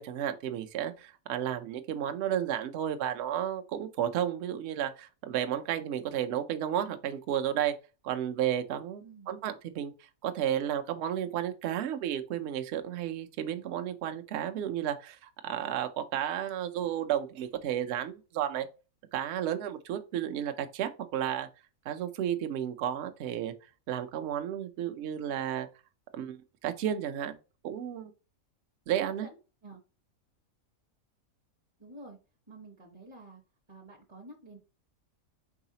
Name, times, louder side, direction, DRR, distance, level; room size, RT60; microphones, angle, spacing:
voice 1, 0.0-7.8 8.0-18.7 19.1-21.5 21.9-23.5 23.9-25.7 26.1-26.4 26.6-27.4 27.6-28.1 28.9-29.3, right 10 dB, 60° right, 0.8 m, -32 dB
voice 2, 9.0-9.3 29.2-29.8 31.8-32.2 32.5-33.4 33.7-34.6, right 2 dB, 25° right, 0.6 m, -50 dB
4.7 x 4.0 x 2.8 m
omnidirectional pair, 1.5 m